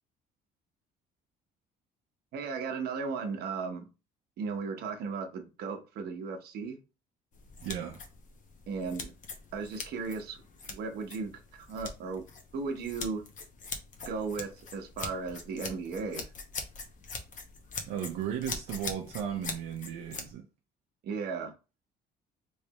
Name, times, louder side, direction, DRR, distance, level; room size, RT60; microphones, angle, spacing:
voice 1, 2.3-3.8 4.4-6.8 8.7-9.1 9.5-10.4 10.7-12.2 12.5-13.2 14.0-16.3 21.0-21.5, right 4 dB, 70° right, 0.9 m, -36 dB
sound 1, 7.3-20.3, left 4 dB, 50° left, 0.9 m, -43 dB
voice 2, 7.6-8.0 17.9-20.4, right 9 dB, 90° right, 0.6 m, -35 dB
3.3 x 3.2 x 2.9 m
cardioid pair, 110°, 17 cm